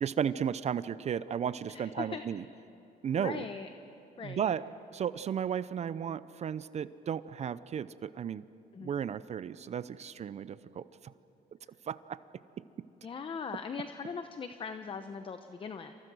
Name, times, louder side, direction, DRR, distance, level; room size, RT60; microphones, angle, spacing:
voice 1, 0.0-2.4 3.0-3.4 4.2-4.6 4.9-8.4 8.8-10.8 11.9-12.2, right 8 dB, 40° right, 16 dB, 0.6 m, -34 dB
voice 2, 1.7-2.2 3.1-3.7 4.2-4.5 8.7-8.9 13.0-15.9, left 5 dB, 30° left, 8 dB, 1.0 m, -40 dB
28.5 x 27.0 x 6.3 m, 2.9 s
cardioid pair, 110°, 17 cm